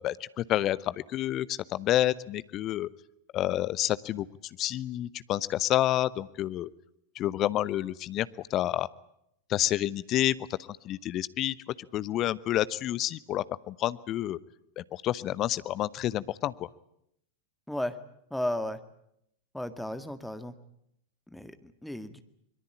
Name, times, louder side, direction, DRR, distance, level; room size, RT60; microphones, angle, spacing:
voice 1, 0.0-2.9 3.3-4.3 4.6-6.7 7.1-8.9 9.5-10.3 10.8-11.5 11.9-14.4 14.8-16.5, left 13 dB, 35° left, 17 dB, 0.9 m, -29 dB
voice 2, 17.7-18.0 18.3-18.8 19.5-20.5 21.3-22.2, left 1 dB, ahead, 9 dB, 1.9 m, -34 dB
24.5 x 22.5 x 8.7 m, 0.75 s
figure-of-eight pair, 90°, 0 cm